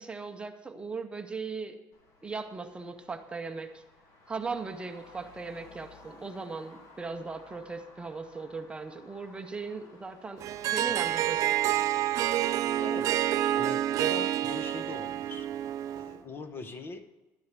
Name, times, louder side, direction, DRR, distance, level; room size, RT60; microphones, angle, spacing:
voice 1, 0.0-1.8 2.2-3.8 4.3-10.4 10.7-11.8, right 4 dB, 15° right, 6 dB, 0.8 m, -38 dB
Traffic noise roadway noise, 1.9-16.9, left 2 dB, 55° left, 2.5 m, -57 dB
Harp, 10.4-16.2, right 12 dB, 50° right, 0.5 m, -28 dB
voice 2, 12.8-15.5 15.9-17.0, left 4 dB, 30° left, 10 dB, 1.0 m, -42 dB
12.0 x 6.5 x 8.1 m, 1.1 s
cardioid pair, 145°, 7 cm